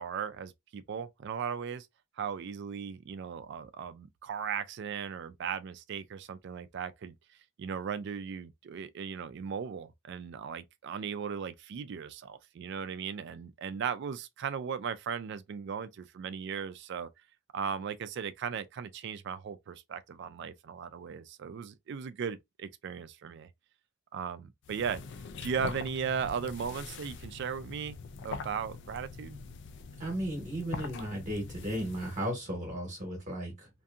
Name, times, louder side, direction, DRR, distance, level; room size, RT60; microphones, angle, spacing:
voice 1, 0.0-1.9 2.2-7.2 7.6-17.1 17.5-23.5 24.1-25.0 25.4-28.0 28.2-29.4, right 7 dB, 55° right, 0.3 m, -37 dB
sound 1, 24.6-32.3, left 4 dB, 55° left, 0.3 m, -43 dB
voice 2, 30.0-33.7, right 1 dB, 35° right, 0.9 m, -35 dB
2.6 x 2.6 x 2.3 m
head